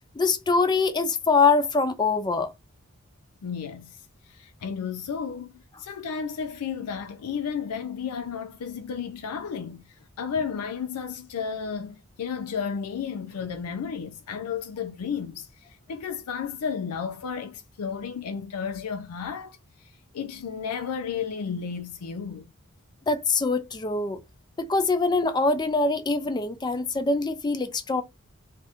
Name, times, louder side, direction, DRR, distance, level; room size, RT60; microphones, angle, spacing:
voice 1, 0.2-2.5 23.1-24.2 24.6-28.0, left 3 dB, 20° left, 0.3 m, -23 dB
voice 2, 3.4-4.0 4.3-9.8 10.2-22.5, left 6 dB, 90° left, 0.4 m, -33 dB
2.7 x 2.5 x 3.4 m
head